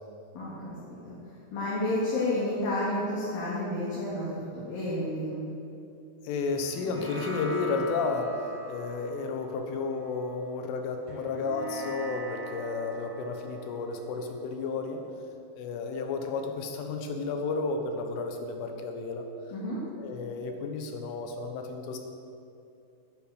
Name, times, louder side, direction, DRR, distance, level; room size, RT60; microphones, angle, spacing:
voice 1, 0.3-0.8 1.0-1.2 1.5-5.5 19.5-19.8, left 1 dB, 55° left, -8 dB, 3.5 m, -30 dB
voice 2, 6.3-15.0 15.6-19.3 20.0-22.0, left 4 dB, 85° left, 4 dB, 3.7 m, -32 dB
sound 1, 6.6-15.3, equal, 10° right, 2.6 m, -42 dB
10.5 x 9.3 x 7.9 m, 2.7 s
omnidirectional pair, 5.5 m